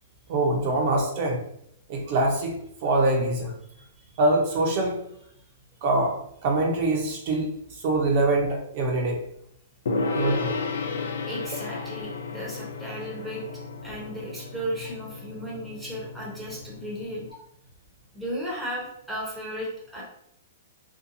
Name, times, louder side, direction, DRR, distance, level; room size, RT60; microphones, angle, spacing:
voice 1, 0.3-1.4 1.9-3.5 4.2-5.0 5.8-6.1 6.4-7.5 7.8-9.2 10.1-10.5, right 2 dB, 40° right, 0 dB, 0.5 m, -24 dB
Gong, 9.9-17.3, left 4 dB, 80° left, 0.4 m, -33 dB
voice 2, 11.3-13.4 13.8-17.2 18.1-20.0, equal, ahead, -5 dB, 0.7 m, -35 dB
2.7 x 2.2 x 2.6 m, 0.71 s
hypercardioid pair, 160°, 0 cm